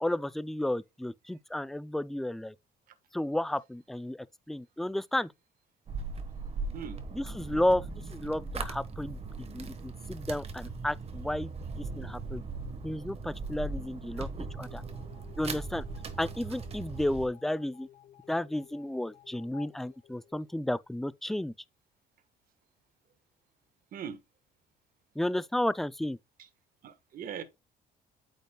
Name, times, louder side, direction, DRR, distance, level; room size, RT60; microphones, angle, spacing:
voice 1, 0.0-2.5 3.1-5.3 7.1-12.4 12.8-14.8 15.4-15.9 16.2-17.9 18.3-21.5 25.2-26.2, left 1 dB, ahead, 0.3 m, -32 dB
sound 1, 5.9-17.3, right 4 dB, 35° right, 1.3 m, -39 dB
sound 2, 14.4-20.9, left 11 dB, 55° left, 4.0 m, -56 dB
voice 2, 23.9-24.2 26.8-27.4, right 8 dB, 55° right, 1.3 m, -40 dB
8.6 x 5.3 x 2.2 m
cardioid pair, 110°, 17 cm